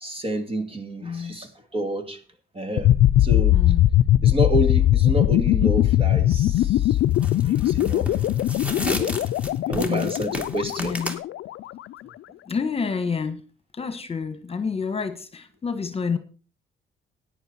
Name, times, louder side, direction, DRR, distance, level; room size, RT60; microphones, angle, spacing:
voice 1, 0.0-2.2 2.5-2.9 3.2-3.6 4.2-6.8 7.4-8.1 9.0-9.1 9.7-11.0, right 1 dB, 30° right, 2.6 m, -29 dB
voice 2, 1.0-1.4 3.5-3.9 9.7-10.1 10.8-11.2 12.5-13.4 13.7-16.2, left 5 dB, 30° left, 1.5 m, -28 dB
sound 1, 2.8-11.6, left 13 dB, 75° left, 0.6 m, -20 dB
sound 2, 6.3-6.6 7.1-11.2, left 1 dB, 5° right, 2.4 m, -33 dB
13.5 x 10.0 x 4.5 m
cardioid pair, 90°, 20 cm